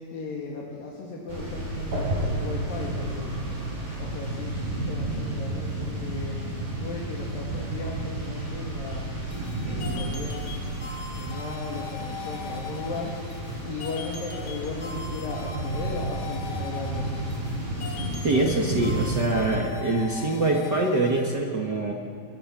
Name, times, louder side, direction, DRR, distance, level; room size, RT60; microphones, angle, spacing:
voice 1, 0.1-3.3 4.0-9.1 9.6-10.5 11.1-13.1 13.6-17.1, left 3 dB, 75° left, -2 dB, 4.0 m, -36 dB
sound 1, 1.3-19.2, right 2 dB, 85° right, 10.0 m, -32 dB
sound 2, 9.3-21.3, left 5 dB, 50° left, 1.7 m, -40 dB
voice 2, 18.2-21.9, right 2 dB, 45° right, 0 dB, 1.4 m, -24 dB
21.5 x 20.0 x 7.5 m, 2.6 s
omnidirectional pair, 4.1 m